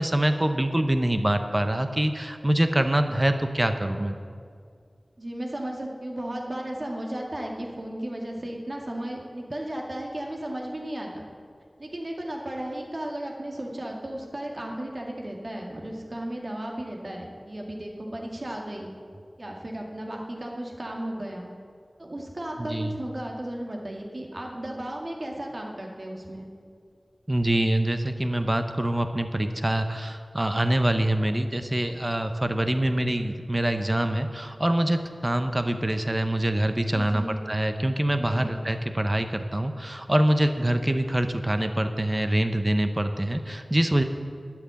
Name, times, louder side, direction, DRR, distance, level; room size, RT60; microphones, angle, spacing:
voice 1, 0.0-4.2 22.7-22.9 27.3-44.0, right 1 dB, 25° right, 7 dB, 0.9 m, -25 dB
voice 2, 5.2-11.2 11.8-18.9 19.4-21.5 22.0-26.5 36.9-37.4 38.2-38.6, right 1 dB, 50° right, 0 dB, 2.1 m, -35 dB
12.5 x 6.0 x 9.3 m, 2.2 s
wide cardioid pair, 45°, 0 cm